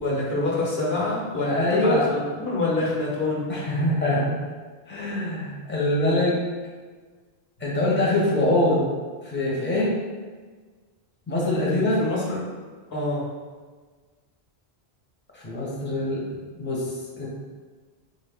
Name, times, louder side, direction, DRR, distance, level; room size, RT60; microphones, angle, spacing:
voice 1, 0.0-3.5 11.7-12.4 12.9-13.3, left 2 dB, 75° left, -4 dB, 1.2 m, -26 dB
voice 2, 1.4-2.1 3.5-4.3 4.9-6.4 7.6-8.9 9.2-10.0 11.3-12.1 15.3-16.2 16.6-16.9 17.1-17.3, left 1 dB, 10° left, -5 dB, 0.7 m, -23 dB
4.0 x 2.7 x 3.4 m, 1.4 s
omnidirectional pair, 1.0 m